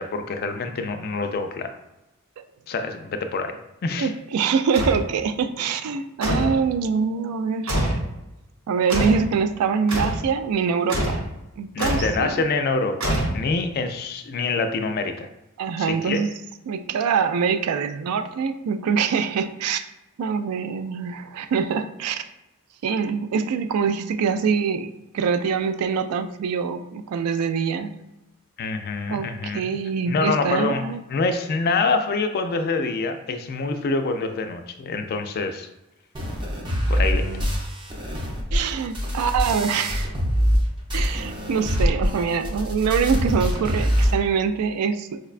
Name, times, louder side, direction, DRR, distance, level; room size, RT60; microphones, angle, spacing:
voice 1, 0.0-1.7 2.7-4.1 11.7-15.3 15.8-16.3 28.6-29.8 30.1-35.7 36.9-37.3, left 3 dB, 45° left, 7 dB, 0.3 m, -26 dB
voice 2, 4.0-7.9 8.7-11.2 11.6-12.4 15.6-16.3 16.7-19.9 20.2-22.3 22.8-27.9 29.1-31.0 36.9-37.0 38.5-40.1 40.9-45.2, right 6 dB, 90° right, 9 dB, 0.3 m, -24 dB
sound 1, 4.7-5.1 6.2-6.6 7.7-8.1 8.9-9.3 9.9-10.2 10.9-11.3 11.8-12.2 13.0-13.6, right 1 dB, 70° right, 0.9 m, -24 dB
sound 2, 36.1-40.6 40.9-44.1, equal, 20° right, 0.5 m, -24 dB
4.8 x 2.1 x 2.4 m, 0.95 s
head